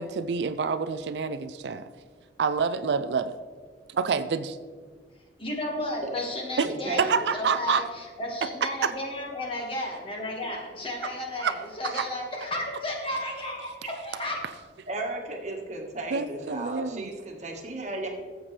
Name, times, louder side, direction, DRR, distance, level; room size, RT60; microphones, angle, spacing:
voice 1, 0.0-1.9 2.4-3.4 3.9-4.6 6.6-6.7 7.0-7.8 8.8-8.9 11.0-11.1 11.4-11.5 11.8-12.1 16.1-17.1, right 5 dB, 70° right, 11 dB, 0.4 m, -27 dB
voice 2, 5.4-14.4, left 1 dB, 30° left, 0 dB, 1.7 m, -33 dB
voice 3, 6.6-7.2 14.9-18.1, right 2 dB, 40° right, 2 dB, 1.5 m, -34 dB
14.5 x 7.4 x 3.3 m, 1.5 s
head